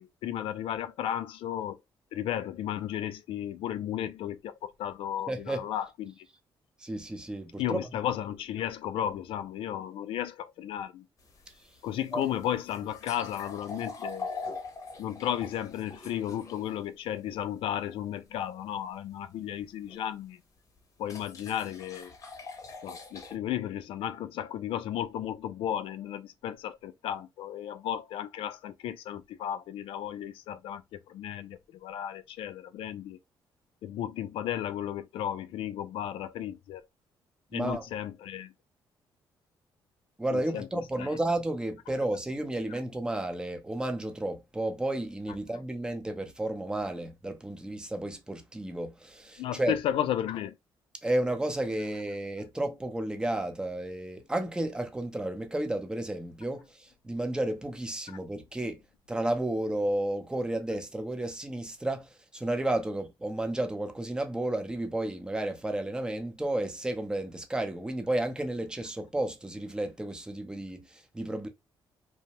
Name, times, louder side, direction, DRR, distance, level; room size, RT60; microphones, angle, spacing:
voice 1, 0.0-1.8 2.1-6.3 7.6-11.1 11.8-14.5 15.0-20.4 21.0-22.1 22.8-33.2 33.8-36.8 37.5-38.5 40.3-40.7 41.0-41.2 42.7-42.8 49.4-50.5, left 10 dB, 90° left, 0.3 m, -34 dB
voice 2, 5.3-5.7 6.8-7.9 12.1-12.2 37.5-37.9 40.2-49.7 51.0-58.8 59.1-71.5, right 1 dB, 10° right, 0.5 m, -32 dB
sound 1, 11.2-16.8 19.9-20.0 21.0-23.4, left 4 dB, 35° left, 0.7 m, -42 dB
2.6 x 2.0 x 2.9 m
cardioid pair, 120°, 9 cm